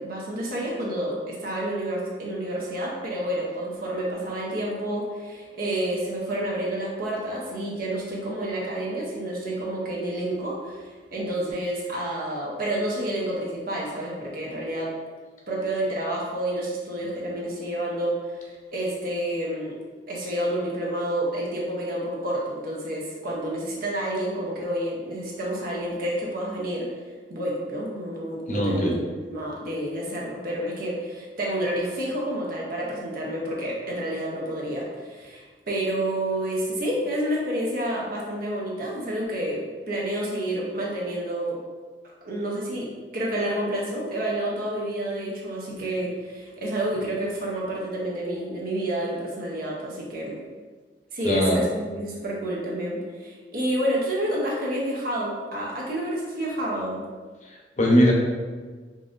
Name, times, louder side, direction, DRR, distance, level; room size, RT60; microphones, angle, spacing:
voice 1, 0.0-14.9 15.5-19.8 20.1-26.9 27.3-29.0 29.3-41.6 42.2-42.9 43.1-50.4 51.1-57.1, right 1 dB, 55° right, -3 dB, 0.8 m, -29 dB
voice 2, 28.5-29.0 51.2-51.6 57.8-58.1, equal, 45° left, -1 dB, 0.7 m, -19 dB
5.3 x 2.6 x 2.5 m, 1.4 s
head